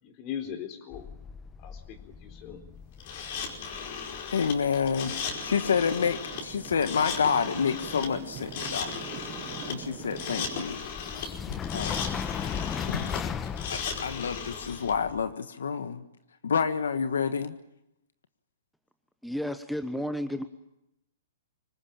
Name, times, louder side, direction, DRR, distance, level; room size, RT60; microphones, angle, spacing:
voice 1, 0.0-1.1 1.6-2.6, left 9 dB, 35° left, 8 dB, 4.1 m, -39 dB
sound 1, 0.9-15.3, left 7 dB, 20° left, 1.0 m, -39 dB
sound 2, 3.0-14.9, left 6 dB, 50° left, 5.0 m, -36 dB
voice 2, 4.3-5.1 5.4-8.9 9.7-10.8 11.7-12.1 12.9-13.4 13.7-16.0 16.4-17.6, left 6 dB, 80° left, 10 dB, 1.4 m, -28 dB
sound 3, 5.0-10.6, right 13 dB, 30° right, 1.3 m, -44 dB
voice 3, 19.2-20.4, equal, ahead, 9 dB, 1.1 m, -32 dB
25.0 x 20.0 x 8.8 m, 0.87 s
hypercardioid pair, 130°, 0 cm